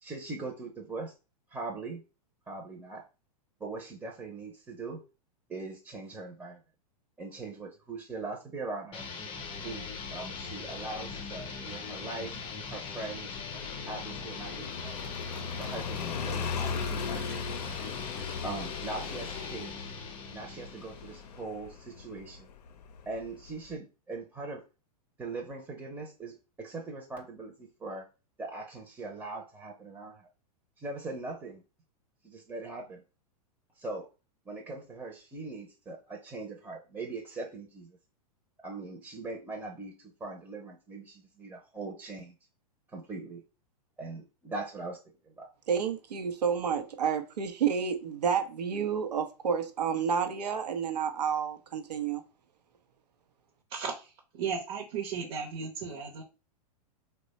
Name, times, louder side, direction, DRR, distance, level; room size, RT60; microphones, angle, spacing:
voice 1, 0.0-1.1 1.5-2.0 2.5-3.1 3.6-5.0 5.5-6.6 7.2-9.1 9.6-12.4 12.7-13.3 13.9-15.0 15.6-17.7 18.4-19.7 20.3-22.5 23.1-24.7 25.2-28.1 28.4-30.3 30.8-31.6 32.2-33.0 33.8-34.1 34.5-38.0 38.6-42.3 42.9-43.4 44.0-45.0 45.2-45.5, right 3 dB, 10° right, 0.6 m, -41 dB
sound 1, 8.9-21.4, left 5 dB, 25° left, 0.7 m, -41 dB
Motorcycle, 9.4-23.7, left 6 dB, 80° left, 0.5 m, -40 dB
voice 2, 45.7-52.2, right 7 dB, 90° right, 0.6 m, -30 dB
voice 3, 53.7-54.1 54.3-56.2, right 6 dB, 50° right, 0.8 m, -35 dB
3.0 x 2.2 x 4.0 m
hypercardioid pair, 115°, 20 cm